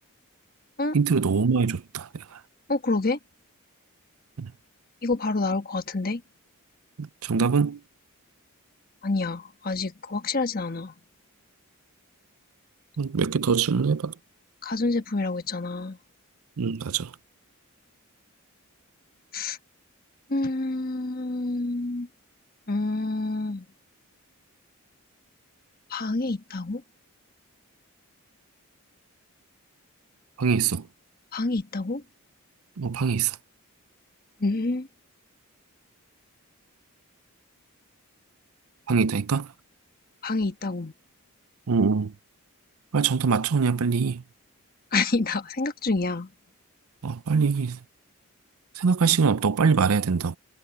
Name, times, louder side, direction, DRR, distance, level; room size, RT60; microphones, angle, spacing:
voice 1, 0.9-2.4 4.4-4.5 7.0-7.8 13.0-14.1 16.6-17.1 30.4-30.9 32.8-33.4 38.9-39.5 41.7-42.1 42.9-44.2 47.0-47.8 48.8-50.4, right 5 dB, 70° right, 0.6 m, -23 dB
voice 2, 2.7-3.2 5.0-6.2 9.0-10.9 14.6-16.0 19.3-19.6 20.3-22.1 22.7-23.6 25.9-26.8 31.3-32.0 34.4-34.9 40.2-40.9 44.9-46.3, left 3 dB, 40° left, 1.3 m, -27 dB
head